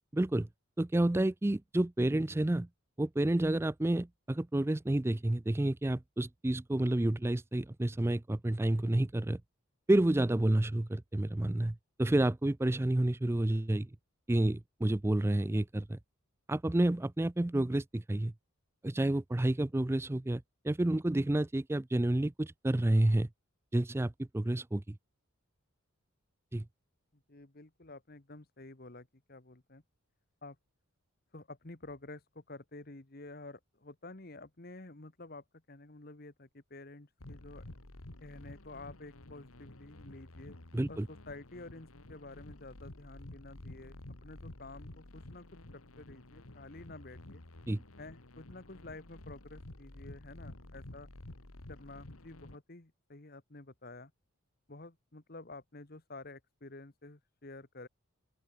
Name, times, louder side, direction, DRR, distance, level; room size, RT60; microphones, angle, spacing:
voice 1, 0.1-0.5 0.8-2.7 3.0-9.4 9.9-13.9 14.3-16.0 16.5-18.3 18.8-23.3 23.7-25.0 26.5-26.6 40.7-41.1 47.7-47.8, right 1 dB, 10° right, 0.3 m, -30 dB
voice 2, 27.1-29.8 30.4-30.6 31.3-37.7 38.2-40.6 40.9-45.4 45.7-47.4 48.0-51.1 51.7-54.1 54.7-57.9, left 2 dB, 45° left, 1.4 m, -50 dB
sound 1, 37.2-52.6, left 1 dB, 80° left, 2.1 m, -51 dB
open air
head